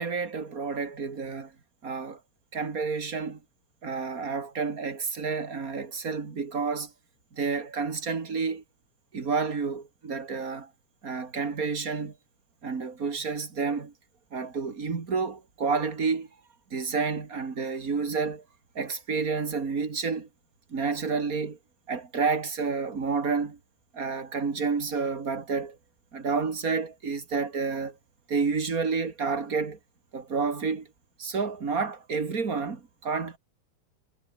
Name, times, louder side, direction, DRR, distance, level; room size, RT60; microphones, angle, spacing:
voice 1, 0.0-1.5 1.8-2.2 2.5-3.4 3.8-6.9 7.3-8.6 9.1-10.7 11.0-12.1 12.6-13.9 14.3-16.3 16.7-18.4 18.7-20.3 20.7-21.6 21.9-23.6 23.9-25.8 26.1-28.0 28.3-29.8 30.1-30.9 31.2-33.4, right 5 dB, 30° right, 2.0 m, -30 dB
omnidirectional pair, 4.2 m